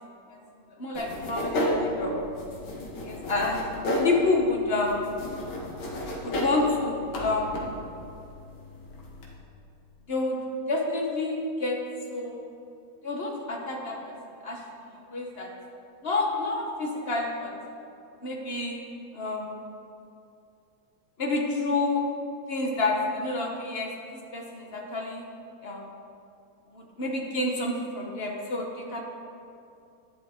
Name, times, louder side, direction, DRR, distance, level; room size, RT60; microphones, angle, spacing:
voice 1, 0.8-2.1 3.0-3.6 4.0-5.0 6.2-7.5 10.1-10.4 10.7-11.8 12.1-12.5 13.0-14.0 14.4-14.6 15.1-15.5 16.0-17.5 18.2-18.8 19.1-19.6 21.2-22.0 22.5-25.2 25.6-25.8 26.7-29.0, left 2 dB, 40° left, 0 dB, 0.9 m, -29 dB
sound 1, 0.9-9.3, left 1 dB, 65° left, 2.3 m, -32 dB
11.5 x 10.5 x 3.6 m, 2.6 s
omnidirectional pair, 2.4 m